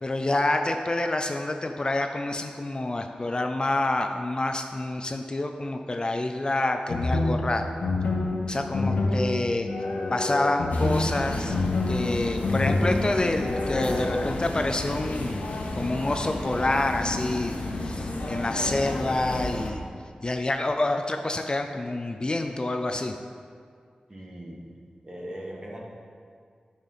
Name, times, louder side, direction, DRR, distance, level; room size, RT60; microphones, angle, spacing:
voice 1, 0.0-7.7 8.5-9.7 10.1-11.6 11.9-15.4 15.7-19.8 20.2-23.2, left 2 dB, 35° left, 5 dB, 0.5 m, -27 dB
sound 1, 6.9-14.3, left 2 dB, 90° left, 0.9 m, -27 dB
sound 2, 10.7-19.7, left 2 dB, 75° left, 1.2 m, -32 dB
voice 2, 24.1-24.6 25.0-25.8, equal, 30° right, -3 dB, 2.0 m, -39 dB
10.5 x 5.7 x 5.7 m, 2.2 s
wide cardioid pair, 75°, 3 cm